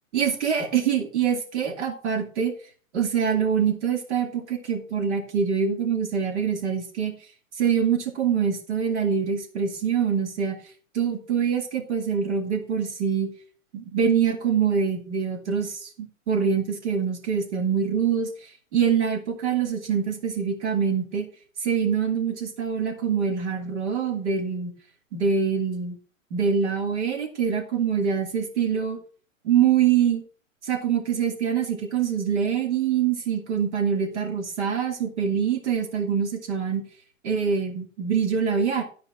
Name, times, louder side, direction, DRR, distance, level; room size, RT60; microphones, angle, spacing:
voice 1, 0.1-2.5 2.9-7.2 7.6-10.6 10.9-13.3 13.7-18.3 18.7-21.3 21.6-24.7 25.1-26.0 26.3-29.0 29.4-30.2 30.6-36.8 37.2-38.8, right 7 dB, 55° right, 2 dB, 2.7 m, -24 dB
13.0 x 4.7 x 5.9 m, 0.41 s
figure-of-eight pair, 115°, 40 cm